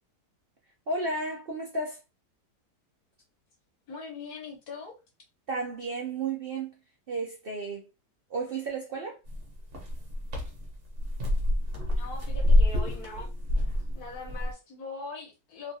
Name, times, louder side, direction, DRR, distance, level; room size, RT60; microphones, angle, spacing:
voice 1, 0.9-2.0 5.5-6.7 7.1-7.9 8.3-9.2, right 3 dB, 75° right, 0.5 m, -33 dB
voice 2, 3.9-5.0 11.9-13.3 13.9-15.7, left 4 dB, 65° left, 1.4 m, -41 dB
sound 1, 9.3-14.5, left 1 dB, 55° right, 1.0 m, -27 dB
3.2 x 2.3 x 2.6 m
omnidirectional pair, 1.8 m